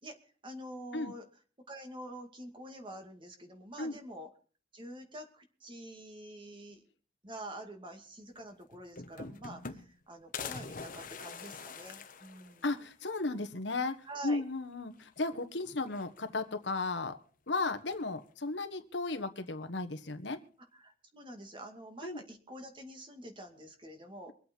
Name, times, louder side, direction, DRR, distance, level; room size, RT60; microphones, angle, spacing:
voice 1, 0.0-1.3 1.7-4.3 4.7-6.8 7.2-12.6 14.0-14.4 20.7-24.3, right 1 dB, 30° right, 4 dB, 2.2 m, -47 dB
sound 1, 8.4-8.5 8.7-10.0 10.3-12.9 13.3-13.4 13.7-13.8 15.0-15.4 15.8-16.5 17.6-18.1, left 5 dB, 50° left, 1.2 m, -45 dB
voice 2, 12.6-17.2 17.5-20.4 22.0-22.2, left 3 dB, 75° left, 8 dB, 1.4 m, -35 dB
24.0 x 8.4 x 4.5 m, 0.40 s
head